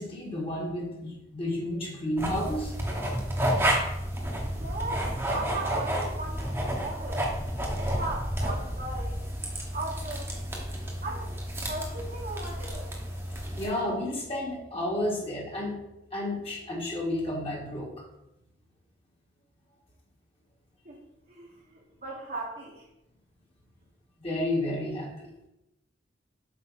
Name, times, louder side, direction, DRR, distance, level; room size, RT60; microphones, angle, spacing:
voice 1, 0.0-2.8 13.6-15.8 16.1-18.1 24.2-25.3, left 1 dB, 30° left, -2 dB, 1.8 m, -31 dB
sound 1, 2.2-13.7, right 1 dB, 10° right, 1.1 m, -31 dB
voice 2, 4.6-7.4 7.8-9.2 9.7-10.3 11.0-11.4 11.7-12.9 20.8-21.0 21.3-22.9, right 2 dB, 45° right, -4 dB, 1.2 m, -37 dB
7.8 x 5.1 x 4.1 m, 0.89 s
head